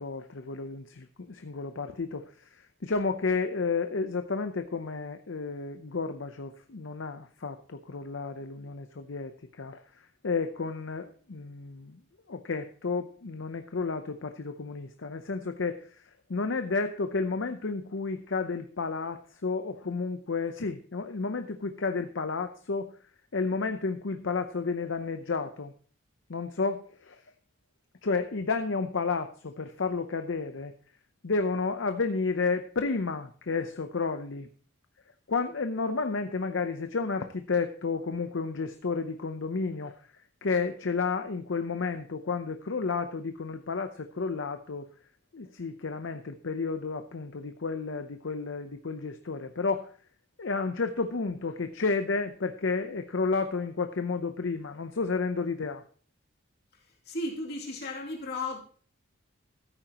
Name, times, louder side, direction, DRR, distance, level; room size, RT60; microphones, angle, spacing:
voice 1, 0.0-2.2 2.5-9.3 9.6-9.8 10.2-12.0 12.3-16.0 16.3-22.9 23.3-25.7 26.3-27.2 28.0-30.7 31.2-34.5 35.3-40.0 40.4-44.9 45.3-49.9 50.4-55.8, left 4 dB, 65° left, 8 dB, 0.7 m, -31 dB
voice 2, 57.0-58.6, left 2 dB, 50° left, -1 dB, 2.7 m, -35 dB
14.0 x 8.9 x 2.9 m, 0.43 s
head